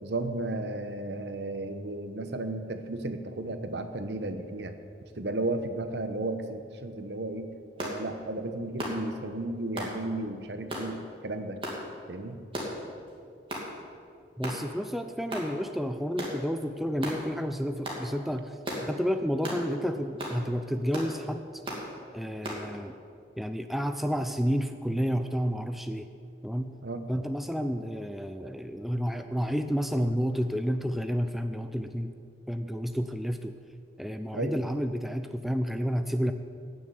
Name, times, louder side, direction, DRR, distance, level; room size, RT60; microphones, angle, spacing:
voice 1, 0.0-4.8 5.2-11.6 12.1-12.4 26.8-27.1 34.3-34.6, right 2 dB, 70° right, 8 dB, 1.0 m, -34 dB
sound 1, 7.8-8.0 8.8-9.0 9.8-9.9 10.7-10.9 11.6-11.8 12.5-12.8 13.5-13.7 14.4-14.6 15.3-15.5 16.2-16.4 17.0-17.2 17.8-18.0 18.6-18.9 19.4-19.6 20.2-20.4 20.9-21.1 21.6-21.8 22.4-22.6, equal, 30° right, 2.6 m, -35 dB
voice 2, 14.4-21.6 22.1-22.9 23.4-26.1 26.4-26.7 27.1-32.2 32.5-33.6 34.0-36.3, equal, ahead, 7 dB, 0.4 m, -30 dB
18.0 x 6.6 x 8.0 m, 2.3 s
head